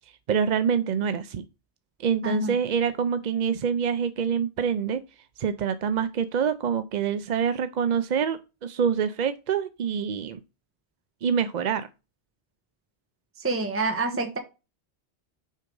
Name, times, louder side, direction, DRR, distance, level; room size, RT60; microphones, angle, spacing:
voice 1, 0.3-1.4 2.0-5.0 5.4-10.4 11.2-11.9, right 7 dB, 55° right, 0.6 m, -26 dB
voice 2, 2.2-2.6 13.4-14.4, right 3 dB, 15° right, 1.0 m, -27 dB
6.4 x 4.9 x 5.3 m
omnidirectional pair, 1.1 m